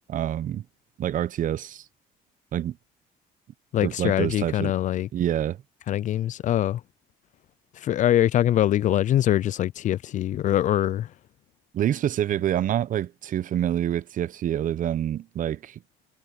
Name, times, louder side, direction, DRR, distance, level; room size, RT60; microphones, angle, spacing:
voice 1, 0.1-0.6 1.0-1.8 2.5-2.8 3.8-4.7 5.1-5.6 11.7-15.8, right 11 dB, 50° right, 0.7 m, -26 dB
voice 2, 3.7-5.1 5.9-6.8 7.7-11.1, left 12 dB, 50° left, 0.4 m, -23 dB
cardioid pair, 110°, 17 cm